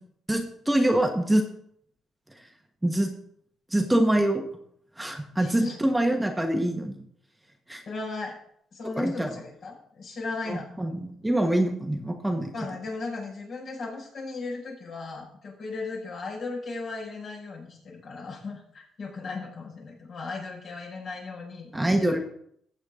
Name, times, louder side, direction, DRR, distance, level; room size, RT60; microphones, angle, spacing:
voice 1, 0.3-1.4 2.8-3.1 3.7-4.4 5.0-7.0 7.7-7.8 9.0-9.3 10.5-12.5 21.7-22.2, right 1 dB, 10° right, 4 dB, 1.2 m, -25 dB
voice 2, 5.4-5.8 7.9-8.4 8.7-10.7 12.5-22.2, left 3 dB, 60° left, -3 dB, 5.3 m, -36 dB
15.0 x 7.9 x 3.7 m, 0.68 s
cardioid pair, 100°, 0 cm